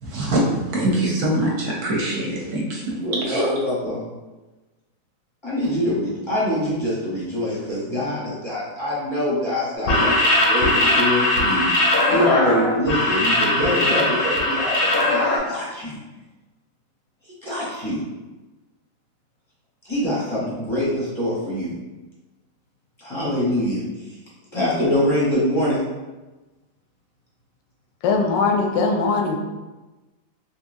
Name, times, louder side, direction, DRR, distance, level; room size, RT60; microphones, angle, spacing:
voice 1, 0.0-3.7, right 1 dB, 65° right, -2 dB, 1.1 m, -23 dB
voice 2, 2.9-4.0 5.4-11.7 12.1-16.0 17.4-18.0 19.9-21.7 23.0-23.8 24.5-25.8, left 1 dB, 25° left, -8 dB, 0.6 m, -24 dB
sound 1, 9.8-15.4, left 1 dB, 60° left, 0.7 m, -20 dB
voice 3, 28.0-29.4, left 4 dB, 85° left, 3 dB, 1.2 m, -20 dB
3.7 x 2.9 x 2.6 m, 1.1 s
omnidirectional pair, 1.9 m